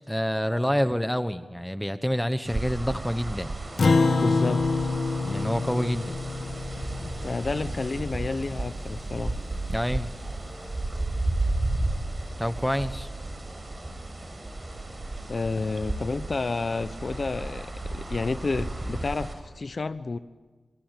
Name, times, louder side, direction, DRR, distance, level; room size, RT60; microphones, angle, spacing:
voice 1, 0.1-3.5 5.2-6.2 9.7-10.1 12.4-13.1, equal, 5° left, 11 dB, 1.1 m, -27 dB
sound 1, 2.4-19.3, right 2 dB, 40° right, 6.9 m, -33 dB
Acoustic guitar, 3.8-8.5, left 3 dB, 75° left, 1.6 m, -26 dB
voice 2, 4.2-4.9 7.0-9.4 15.3-20.2, left 3 dB, 60° left, 12 dB, 0.9 m, -30 dB
25.0 x 25.0 x 9.1 m, 1.3 s
wide cardioid pair, 70°, 0 cm